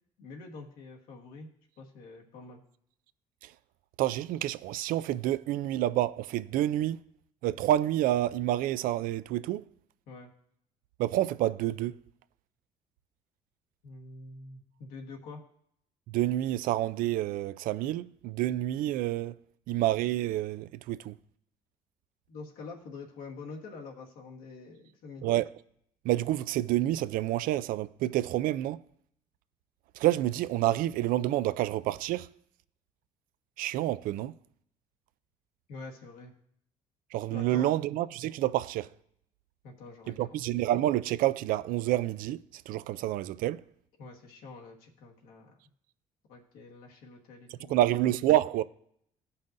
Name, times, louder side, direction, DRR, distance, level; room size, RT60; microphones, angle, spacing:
voice 1, 0.2-1.5 1.8-2.6 10.1-10.3 13.8-15.4 22.3-25.3 35.7-36.3 37.3-37.7 39.6-40.4 44.0-45.5 46.3-47.8, left 3 dB, 80° left, 1.4 m, -46 dB
voice 2, 4.0-7.0 7.4-9.6 11.0-12.0 16.1-19.4 19.7-21.2 25.2-25.5 26.0-28.8 30.0-32.3 33.6-34.3 37.1-38.9 40.1-43.6 47.7-48.6, right 14 dB, 75° right, 0.4 m, -28 dB
16.5 x 5.6 x 2.6 m
cardioid pair, 85°, 14 cm